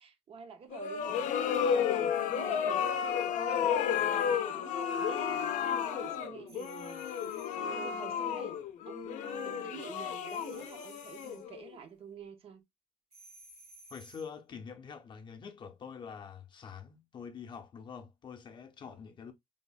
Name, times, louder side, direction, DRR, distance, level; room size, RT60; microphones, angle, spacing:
voice 1, 0.0-7.1 7.5-8.6 8.8-12.6, right 6 dB, 50° right, 0.5 m, -48 dB
sound 1, 0.7-11.7, left 8 dB, 90° left, 0.4 m, -32 dB
sound 2, 6.5-7.7 10.3-11.5 13.1-14.4, right 2 dB, 70° right, 1.6 m, -56 dB
voice 2, 13.9-19.3, left 6 dB, 40° left, 0.5 m, -46 dB
3.3 x 2.1 x 2.3 m
cardioid pair, 150°, 12 cm